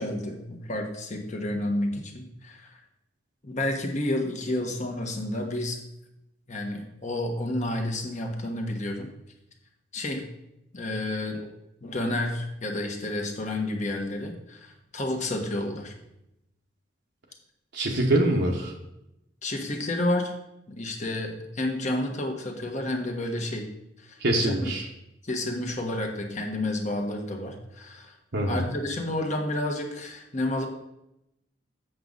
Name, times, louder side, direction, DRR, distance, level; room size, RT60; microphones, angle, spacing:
voice 1, 0.0-2.7 3.4-5.8 6.5-9.1 9.9-10.2 10.7-11.4 11.8-15.9 19.4-20.3 20.7-23.7 24.0-24.7 25.2-28.1 28.5-30.7, left 1 dB, 40° left, 2 dB, 1.3 m, -30 dB
voice 2, 17.7-18.7 24.2-24.9 28.3-28.7, right 1 dB, 65° right, -1 dB, 1.1 m, -24 dB
7.8 x 6.4 x 3.9 m, 0.85 s
head